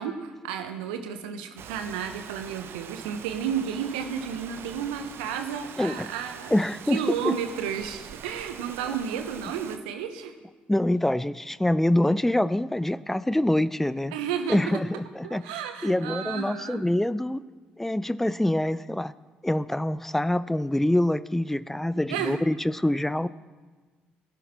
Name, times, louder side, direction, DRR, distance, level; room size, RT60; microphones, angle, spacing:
voice 1, 0.0-6.5 6.9-10.3 14.1-14.8 15.2-16.8 22.1-22.4, right 8 dB, 75° right, 8 dB, 1.2 m, -32 dB
Rain, 1.6-9.8, right 8 dB, 50° right, 0.8 m, -43 dB
voice 2, 6.5-7.0 7.2-7.3 10.7-14.1 14.5-15.4 15.8-17.4 17.8-19.1 19.4-23.3, left 1 dB, 5° left, 17 dB, 0.6 m, -25 dB
18.0 x 11.0 x 4.4 m, 1.4 s
figure-of-eight pair, 50°, 5 cm